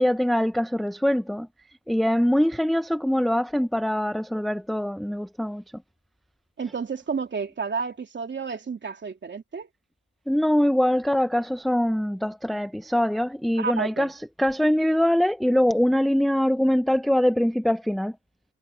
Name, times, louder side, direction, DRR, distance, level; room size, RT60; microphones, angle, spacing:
voice 1, 0.0-1.5 1.9-5.6 10.3-18.2, equal, ahead, 0.7 m, -23 dB
voice 2, 6.6-9.7 13.6-14.1, right 5 dB, 35° right, 3.2 m, -31 dB
cardioid pair, 90°, 30 cm